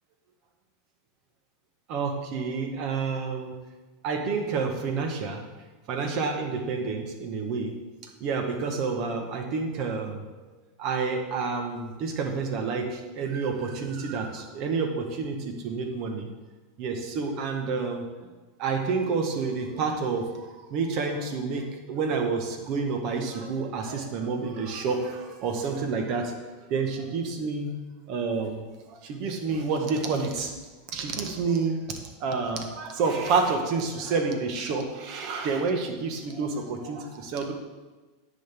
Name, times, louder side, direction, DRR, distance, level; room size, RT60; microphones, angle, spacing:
voice 1, 1.9-3.5 4.0-5.4 5.9-7.7 8.2-10.2 10.8-16.3 16.8-18.0 18.6-26.4 26.7-27.7 28.1-30.5 30.9-31.8 32.2-37.5, right 4 dB, 55° right, 4 dB, 1.5 m, -29 dB
10.0 x 6.4 x 3.8 m, 1.3 s
hypercardioid pair, 110°, 0 cm